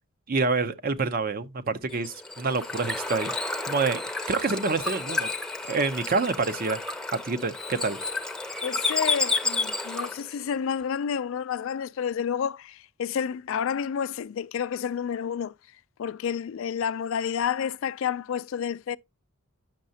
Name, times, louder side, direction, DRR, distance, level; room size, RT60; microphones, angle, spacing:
voice 1, 0.3-3.3 3.7-4.0 4.3-5.3 5.7-6.8 7.2-8.0, right 4 dB, 40° right, 0.6 m, -27 dB
Bird / Water, 1.9-10.3, left 3 dB, 5° left, 0.6 m, -31 dB
voice 2, 8.6-15.5 16.0-19.0, left 7 dB, 60° left, 0.3 m, -30 dB
8.9 x 6.4 x 2.7 m
head